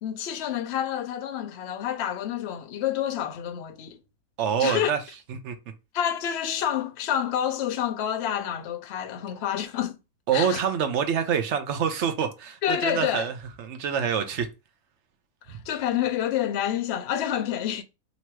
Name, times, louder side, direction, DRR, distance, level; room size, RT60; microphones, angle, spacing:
voice 1, 0.0-4.0 4.6-4.9 5.9-10.0 10.3-10.6 12.6-13.3 15.5-17.8, left 10 dB, 60° left, 0.7 m, -28 dB
voice 2, 4.4-5.0 5.3-5.6 10.3-14.5, right 7 dB, 60° right, 0.9 m, -26 dB
3.0 x 2.8 x 4.5 m
omnidirectional pair, 1.5 m